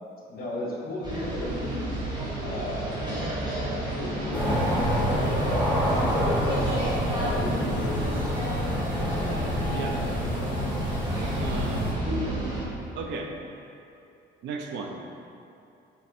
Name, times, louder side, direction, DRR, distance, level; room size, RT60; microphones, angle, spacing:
voice 1, 0.3-1.9 2.4-3.2 3.6-6.5 7.1-9.1 10.2-10.3, left 1 dB, 50° left, -3 dB, 1.4 m, -36 dB
sound 1, 1.0-12.6, right 1 dB, 20° right, 1.3 m, -31 dB
sound 2, 4.3-11.9, equal, 5° left, 1.2 m, -28 dB
voice 2, 11.4-11.9 13.0-13.4 14.4-15.1, right 4 dB, 70° right, 2 dB, 0.7 m, -34 dB
7.4 x 3.1 x 4.3 m, 2.6 s
cardioid pair, 130°, 19 cm